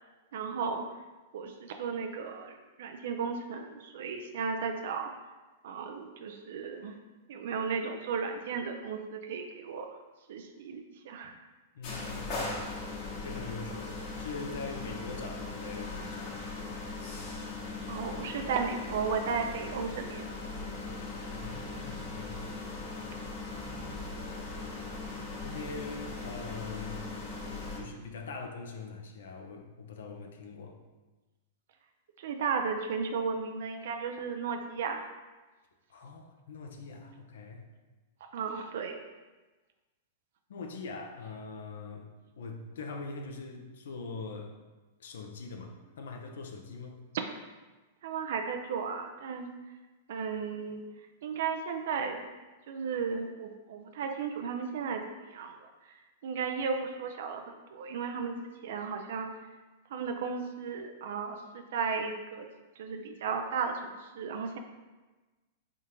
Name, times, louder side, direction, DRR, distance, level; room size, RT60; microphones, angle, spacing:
voice 1, 0.3-0.8 1.3-5.1 5.6-6.9 7.3-9.9 10.3-11.3 17.9-20.2 32.2-35.0 38.3-39.0 48.0-49.5 50.1-50.8 51.2-52.3 52.7-55.6 56.2-59.3 59.9-62.5 62.8-64.6, right 5 dB, 65° right, 4 dB, 0.3 m, -34 dB
voice 2, 11.7-12.5 13.2-16.4 20.9-22.5 24.1-24.7 25.1-27.0 27.7-30.8 35.9-37.6 40.5-42.1 42.4-44.5 45.0-47.0, left 4 dB, 75° left, 3 dB, 0.5 m, -43 dB
sound 1, 11.8-27.8, left 3 dB, 50° left, 1.0 m, -39 dB
3.6 x 3.5 x 2.9 m, 1.2 s
hypercardioid pair, 110°, 0 cm